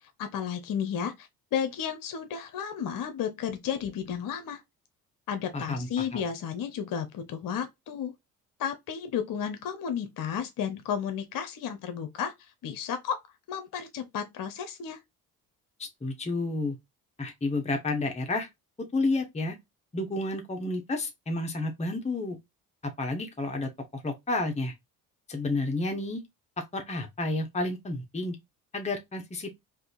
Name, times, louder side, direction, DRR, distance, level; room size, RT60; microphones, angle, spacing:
voice 1, 0.2-4.6 5.3-8.1 8.6-13.2 13.5-15.0, left 8 dB, 50° left, 0.8 m, -33 dB
voice 2, 5.5-6.2 15.8-16.8 17.2-18.5 18.9-19.6 19.9-22.4 23.0-24.7 25.3-26.2 26.7-28.4 28.7-29.5, left 2 dB, 15° left, 1.0 m, -31 dB
3.6 x 2.7 x 2.3 m
hypercardioid pair, 55°, 43 cm